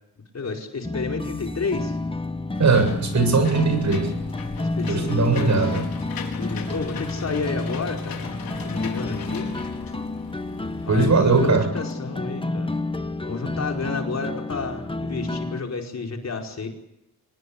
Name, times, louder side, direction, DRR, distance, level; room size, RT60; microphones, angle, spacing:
voice 1, 0.3-2.0 4.6-5.6 6.4-8.2 8.6-9.5 10.8-12.7 13.2-16.7, left 4 dB, 45° left, 2 dB, 4.9 m, -31 dB
sound 1, 0.8-15.6, left 2 dB, 15° left, 1.4 m, -30 dB
Engine / Mechanisms, 2.5-11.5, left 6 dB, 65° left, 4.7 m, -39 dB
voice 2, 2.6-4.1 4.9-5.8 10.9-11.7, right 4 dB, 45° right, 8 dB, 7.6 m, -20 dB
25.5 x 20.5 x 8.7 m, 0.84 s
cardioid pair, 105°, 38 cm